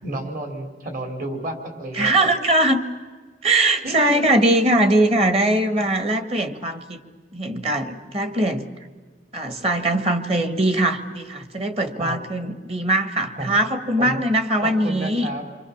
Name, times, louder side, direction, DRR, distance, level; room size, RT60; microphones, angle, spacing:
voice 1, 0.0-2.1 3.8-4.3 12.0-12.2 13.3-13.5 14.0-14.2 14.6-15.4, right 1 dB, 50° right, 5 dB, 3.8 m, -31 dB
voice 2, 2.0-2.8 3.4-7.0 7.3-8.6 9.3-15.3, right 1 dB, 35° right, 9 dB, 1.6 m, -21 dB
29.0 x 23.5 x 7.3 m, 1.5 s
head